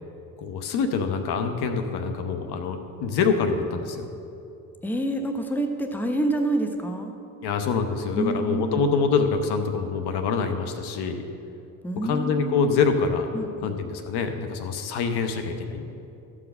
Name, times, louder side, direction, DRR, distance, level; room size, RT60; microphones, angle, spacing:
voice 1, 0.4-4.1 7.4-11.2 12.0-13.3 13.6-15.9, left 5 dB, 60° left, 6 dB, 1.0 m, -25 dB
voice 2, 4.8-7.1 8.1-8.8 11.8-12.8 13.3-13.7, right 1 dB, 5° left, 5 dB, 0.9 m, -27 dB
13.0 x 4.9 x 6.1 m, 2.7 s
hypercardioid pair, 60°, 45 cm